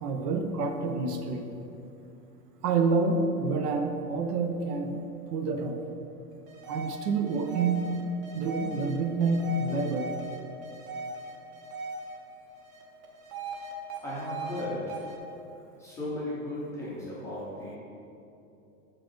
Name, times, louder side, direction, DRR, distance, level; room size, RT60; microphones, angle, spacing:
voice 1, 0.0-1.5 2.6-5.0 5.3-5.8 6.7-7.9 8.3-10.1, right 4 dB, 80° right, 5 dB, 0.9 m, -28 dB
sound 1, 6.5-12.2 12.5-14.6 14.9-15.2, right 3 dB, 30° right, 0.7 m, -39 dB
voice 2, 14.0-15.0 15.8-17.8, left 1 dB, 5° left, -8 dB, 0.5 m, -36 dB
6.4 x 4.9 x 4.5 m, 2.9 s
supercardioid pair, 155°, 47 cm